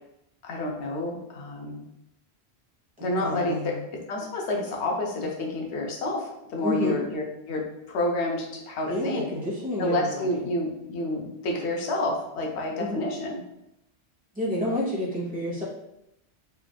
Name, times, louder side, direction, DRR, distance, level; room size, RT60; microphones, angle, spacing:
voice 1, 0.4-1.8 3.0-3.8 4.1-9.3 9.8-13.4, left 2 dB, 85° left, 0 dB, 0.9 m, -29 dB
voice 2, 3.2-3.8 6.6-7.0 8.9-10.4 12.8-13.0 14.3-15.6, left 1 dB, 10° right, -8 dB, 0.8 m, -29 dB
3.4 x 2.4 x 2.2 m, 0.84 s
omnidirectional pair, 1.1 m